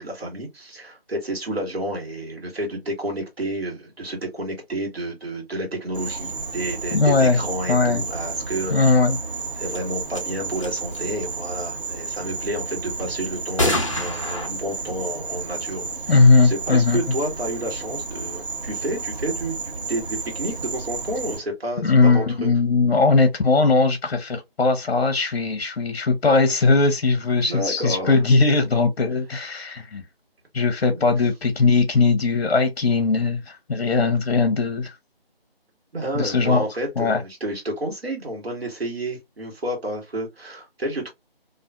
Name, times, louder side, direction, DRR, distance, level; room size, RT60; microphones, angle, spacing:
voice 1, 0.0-8.9 9.6-13.7 14.0-19.6 19.9-22.5 27.5-28.2 29.1-29.2 30.9-31.1 35.9-41.1, right 1 dB, 75° right, 1.3 m, -30 dB
Insect, 5.9-21.4, right 4 dB, 55° right, 1.1 m, -32 dB
voice 2, 6.9-7.4 7.7-8.0 8.7-9.2 16.1-17.0 21.8-30.0 30.5-34.9 36.1-36.6 37.0-37.2, left 3 dB, 70° left, 0.6 m, -19 dB
sound 1, 9.7-9.8 10.1-10.2 10.6-11.0 13.6-14.5, left 1 dB, 30° left, 0.6 m, -24 dB
2.5 x 2.4 x 2.2 m
figure-of-eight pair, 165°, 31 cm